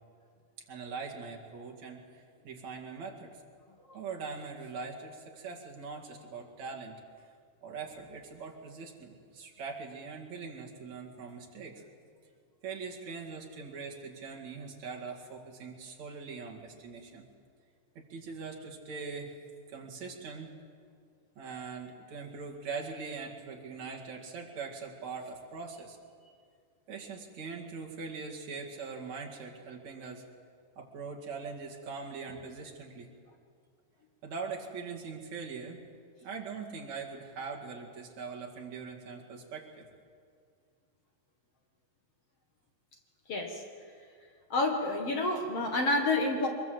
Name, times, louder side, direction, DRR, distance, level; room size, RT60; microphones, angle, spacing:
voice 1, 0.7-3.4 3.9-7.0 7.6-11.8 12.6-17.2 18.0-19.3 19.7-20.5 21.4-26.0 26.9-30.2 30.8-33.1 34.2-35.8 36.2-39.9, right 5 dB, 55° right, -1 dB, 3.4 m, -42 dB
voice 2, 43.3-43.6 44.5-46.5, left 2 dB, 50° left, 2 dB, 2.5 m, -29 dB
24.5 x 21.0 x 7.9 m, 2.1 s
omnidirectional pair, 4.0 m